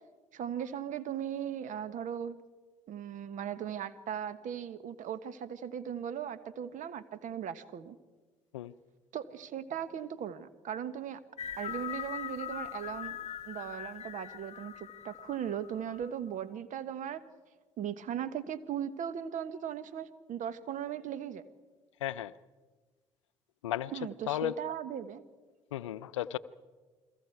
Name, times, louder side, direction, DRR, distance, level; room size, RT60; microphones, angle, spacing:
voice 1, 0.3-2.4 2.9-8.0 9.1-11.2 11.6-17.2 17.8-21.4 23.9-25.2, right 9 dB, 55° right, 13 dB, 1.4 m, -38 dB
sound 1, 11.4-16.1, left 9 dB, 45° left, 1.0 m, -41 dB
voice 2, 22.0-22.3 23.6-23.9 24.3-24.5 25.7-26.4, left 13 dB, 85° left, 16 dB, 0.6 m, -34 dB
29.5 x 22.0 x 4.7 m, 1.3 s
hypercardioid pair, 55°, 15 cm